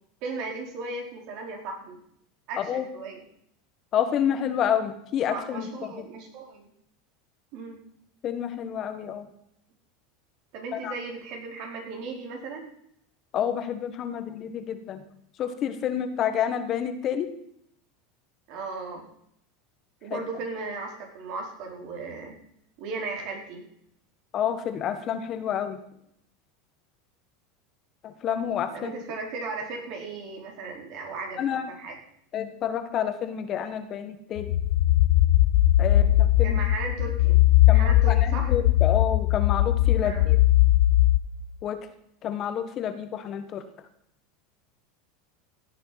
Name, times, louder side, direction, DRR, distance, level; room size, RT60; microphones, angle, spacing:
voice 1, 0.2-2.0 2.5-3.2 5.3-6.7 7.5-7.8 10.5-12.7 18.5-19.0 20.0-22.4 22.8-23.6 28.7-32.0 35.9-37.4 37.7-38.6 40.0-40.3, right 3 dB, 55° right, 2 dB, 4.5 m, -36 dB
voice 2, 3.9-5.9 8.2-9.2 10.8-10.9 13.3-15.0 15.4-17.3 20.1-20.2 24.3-25.8 28.0-28.9 31.4-31.7 32.3-34.5 35.8-36.6 37.7-37.9 38.2-40.4 41.6-41.8 42.2-43.6, left 9 dB, 40° left, 9 dB, 1.5 m, -29 dB
sound 1, 34.4-41.2, left 15 dB, 70° left, 1.0 m, -20 dB
16.0 x 8.3 x 6.0 m, 0.71 s
supercardioid pair, 130°, 0 cm